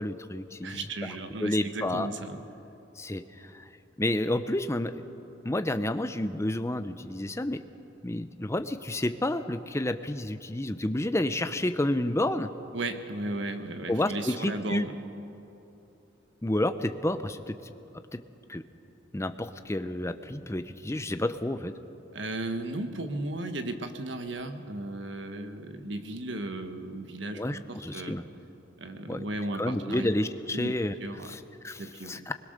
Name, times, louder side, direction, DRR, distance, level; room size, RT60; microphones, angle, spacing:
voice 1, 0.0-0.8 1.4-2.1 3.0-3.6 4.0-5.0 5.4-7.6 8.0-12.5 13.9-14.8 16.4-17.7 18.1-18.2 18.5-18.6 19.1-21.7 27.3-28.2 29.1-29.2 29.6-30.9 31.2-32.3, left 1 dB, 15° left, 10 dB, 0.7 m, -30 dB
voice 2, 0.6-2.4 12.7-15.0 22.1-28.2 28.8-30.1 30.5-30.7 31.0-31.3 31.8-32.2, right 2 dB, 65° right, 7 dB, 1.4 m, -35 dB
21.5 x 21.0 x 6.7 m, 2.8 s
head